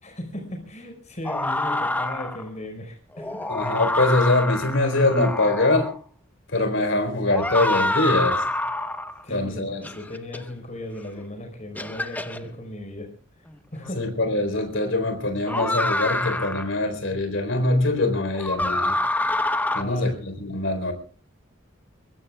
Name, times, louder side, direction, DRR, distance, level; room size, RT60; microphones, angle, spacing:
voice 1, 0.0-3.5 9.2-13.1 13.7-14.0 19.8-20.2, left 1 dB, 35° left, 4 dB, 4.8 m, -36 dB
sound 1, 1.2-2.5 3.2-6.0 7.3-9.2 9.8-10.4 11.2-11.3 11.8-12.4 13.8-13.9 15.5-16.7 18.3-19.8, left 2 dB, 10° left, 1.0 m, -26 dB
voice 2, 3.5-5.9 6.5-8.4 9.3-9.8 14.0-19.0 19.7-20.9, left 2 dB, 65° left, 8 dB, 4.1 m, -23 dB
23.0 x 22.5 x 2.4 m, 0.40 s
head